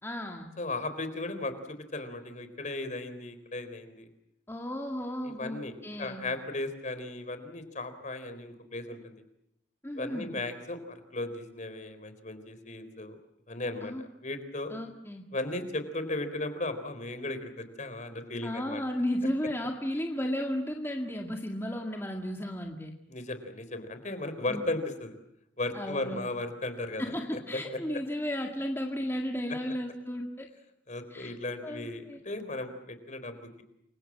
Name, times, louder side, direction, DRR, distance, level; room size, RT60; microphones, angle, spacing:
voice 1, 0.0-0.5 4.5-6.2 9.8-10.3 13.8-14.0 14.7-15.2 18.4-22.9 24.5-24.6 25.7-26.2 27.0-30.5 31.1-31.3 31.6-32.2, equal, 15° left, 2 dB, 2.1 m, -34 dB
voice 2, 0.6-4.1 5.2-5.7 6.0-9.2 9.9-13.2 13.5-13.9 14.2-14.7 15.3-18.8 23.1-25.2 25.6-27.8 30.9-33.6, left 2 dB, 40° left, 10 dB, 4.0 m, -36 dB
29.0 x 24.5 x 7.6 m, 0.78 s
head